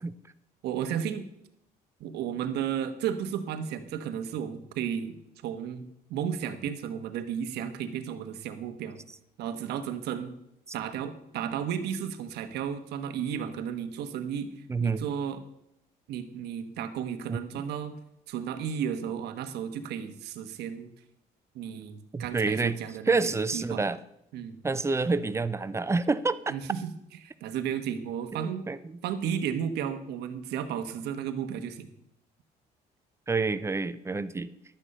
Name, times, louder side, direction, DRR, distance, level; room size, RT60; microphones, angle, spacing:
voice 1, 0.6-1.2 2.0-5.2 5.4-5.8 6.1-9.0 9.4-10.3 10.7-14.5 14.8-15.4 16.1-18.0 18.3-20.9 21.5-23.8 24.3-24.6 26.5-26.9 27.2-28.6 29.0-31.9, right 8 dB, 80° right, 8 dB, 1.3 m, -33 dB
voice 2, 14.7-15.1 17.3-17.4 22.1-22.8 23.1-24.0 24.6-26.5 28.3-29.0 33.3-34.5, right 4 dB, 15° right, 14 dB, 0.6 m, -28 dB
11.5 x 8.9 x 5.5 m, 0.79 s
cardioid pair, 110°, 17 cm